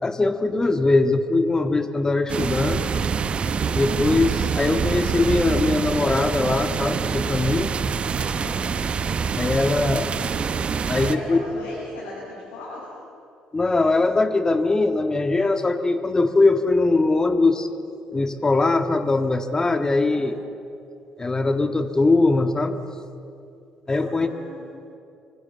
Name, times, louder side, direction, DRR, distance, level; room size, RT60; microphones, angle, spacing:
voice 1, 0.0-2.8 3.7-7.7 9.4-10.1 10.9-11.4 13.5-17.7 18.1-20.4 21.2-22.8 23.9-24.3, left 3 dB, 25° left, 8 dB, 1.8 m, -21 dB
sound 1, 2.3-11.2, right 6 dB, 40° right, 1.1 m, -25 dB
voice 2, 8.3-8.9 11.0-12.9 20.1-20.3 23.8-24.6, left 2 dB, 70° left, -7 dB, 6.7 m, -38 dB
26.0 x 23.5 x 7.7 m, 2.6 s
figure-of-eight pair, 45°, 3 cm